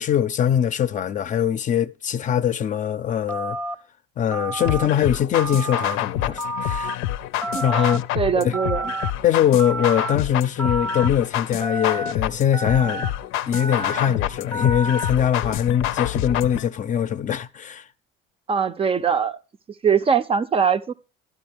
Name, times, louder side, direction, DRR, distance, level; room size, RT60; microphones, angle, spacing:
voice 1, 0.0-3.6 4.2-7.0 7.6-8.0 8.4-8.5 9.2-13.1 13.5-17.8, left 9 dB, 40° left, 0.5 m, -22 dB
Telephone, 3.3-3.7 4.3-4.9 5.3-6.0 6.4-6.9 7.4-8.0 8.5-9.1 9.6-10.1 10.6-11.1 11.6-12.1 12.5-13.1 13.5-14.1 14.5-15.1, right 1 dB, 5° left, 0.8 m, -29 dB
sound 1, 4.7-16.7, left 13 dB, 85° left, 0.6 m, -28 dB
voice 2, 7.5-7.9 8.2-8.9 18.5-19.4 19.8-20.9, right 6 dB, 30° right, 0.5 m, -21 dB
12.5 x 10.0 x 3.4 m
cardioid pair, 130°, 20 cm